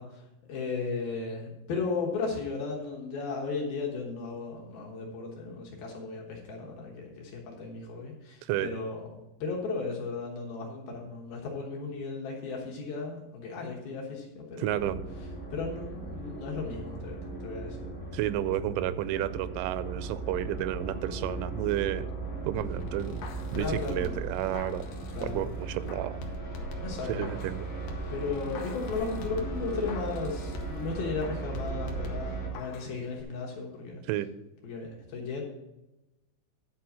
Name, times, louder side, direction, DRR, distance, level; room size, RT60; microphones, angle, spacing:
voice 1, 0.0-9.1 9.4-14.8 15.5-18.2 23.5-24.2 25.1-25.5 26.8-27.3 28.1-34.0 34.6-35.4, left 4 dB, 65° left, -1 dB, 2.7 m, -35 dB
voice 2, 14.6-15.0 18.1-22.1 22.4-23.2 23.5-24.9 25.2-26.2 27.1-27.7 34.1-34.3, right 13 dB, 90° right, 15 dB, 3.0 m, -31 dB
sound 1, 14.7-32.5, right 3 dB, 35° left, 1.0 m, -38 dB
sound 2, 22.6-25.5 25.9-27.6 27.9-30.9 31.2-32.9 33.2-33.3, left 3 dB, 80° left, 1.9 m, -42 dB
10.5 x 4.4 x 7.2 m, 0.99 s
omnidirectional pair, 5.4 m